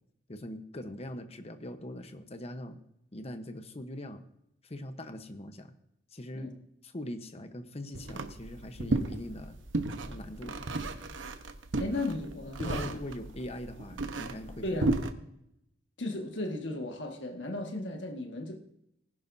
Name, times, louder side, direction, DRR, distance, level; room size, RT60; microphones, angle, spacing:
voice 1, 0.3-2.8 3.1-4.2 4.6-5.7 6.1-6.5 6.8-9.6 10.0-10.6 12.6-14.6, left 1 dB, 35° left, 1.0 m, -41 dB
sound 1, 7.9-15.1, right 2 dB, 90° right, 1.0 m, -34 dB
voice 2, 11.8-13.0 14.6-15.0 16.0-18.6, left 2 dB, 70° left, 1.7 m, -35 dB
19.5 x 11.0 x 2.7 m
head